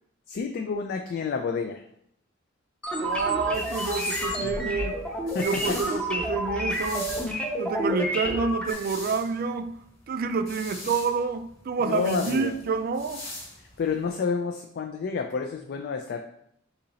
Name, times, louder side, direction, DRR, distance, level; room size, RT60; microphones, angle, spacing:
voice 1, 0.3-1.8 5.3-5.8 11.8-12.6 13.8-16.2, left 5 dB, 55° left, 0.3 m, -29 dB
sound 1, 2.8-8.7, equal, 5° left, 0.6 m, -29 dB
voice 2, 3.0-5.0 5.4-7.1 7.6-9.8 10.1-13.3, right 5 dB, 50° right, 0.3 m, -28 dB
sound 2, 3.1-14.1, left 2 dB, 85° left, 1.3 m, -42 dB
3.9 x 2.8 x 4.1 m
head